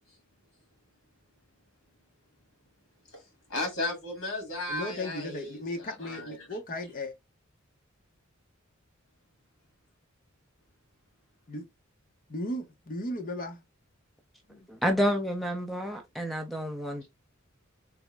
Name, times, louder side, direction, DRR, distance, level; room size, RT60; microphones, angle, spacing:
voice 1, 3.5-6.5, left 2 dB, 70° left, 1.8 m, -35 dB
voice 2, 4.7-7.1 11.5-11.6 12.3-13.6 14.5-14.7, left 1 dB, 40° left, 0.7 m, -36 dB
voice 3, 14.7-17.1, equal, ahead, 0.5 m, -29 dB
3.5 x 2.0 x 3.2 m
head